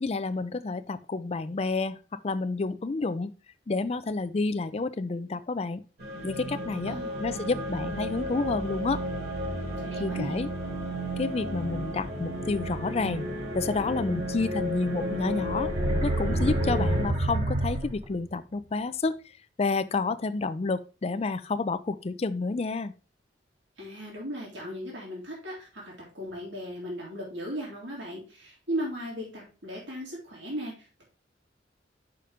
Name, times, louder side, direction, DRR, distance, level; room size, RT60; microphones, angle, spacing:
voice 1, 0.0-2.0 2.2-3.3 3.7-5.8 6.2-9.0 10.0-10.5 11.2-13.3 13.5-15.7 16.0-19.2 19.6-22.9, left 3 dB, 35° left, 12 dB, 0.4 m, -29 dB
sound 1, 6.0-17.1, equal, 60° right, 2.6 m, -33 dB
voice 2, 6.9-7.3 9.8-10.4 23.8-31.0, equal, 85° right, -3 dB, 3.0 m, -37 dB
sound 2, 15.5-18.3, right 2 dB, 40° right, 1.6 m, -27 dB
5.7 x 5.1 x 4.9 m, 0.34 s
head